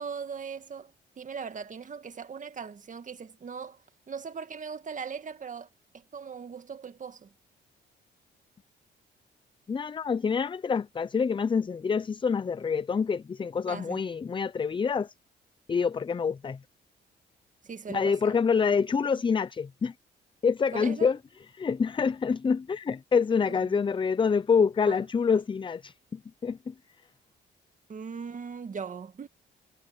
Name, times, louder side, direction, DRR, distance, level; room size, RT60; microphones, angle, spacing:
voice 1, 0.0-5.7 5.9-7.3 13.7-14.0 17.6-18.4 20.7-21.1 23.5-23.8 24.9-25.0 27.9-29.3, right 6 dB, 40° right, 1.9 m, -39 dB
voice 2, 9.7-15.1 15.7-16.6 17.9-19.9 20.4-21.2 21.6-26.7, left 5 dB, 25° left, 0.5 m, -26 dB
cardioid pair, 90°, 20 cm